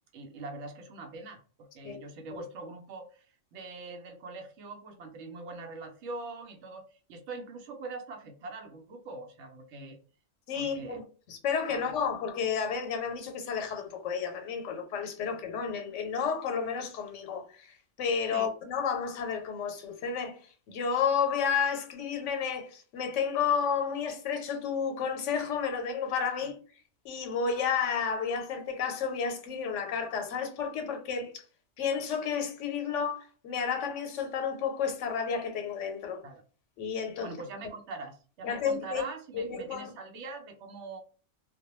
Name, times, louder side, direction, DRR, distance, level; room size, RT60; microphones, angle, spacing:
voice 1, 0.1-3.3 3.5-10.0 10.5-11.0 11.7-11.8 18.3-18.5 36.2-36.4 37.2-41.0, right 3 dB, 75° right, 0.9 m, -43 dB
voice 2, 10.5-26.6 27.0-31.4 31.8-36.2 36.8-37.3 38.4-39.0 39.3-39.9, left 6 dB, 90° left, 1.0 m, -31 dB
2.2 x 2.1 x 2.9 m
omnidirectional pair, 1.2 m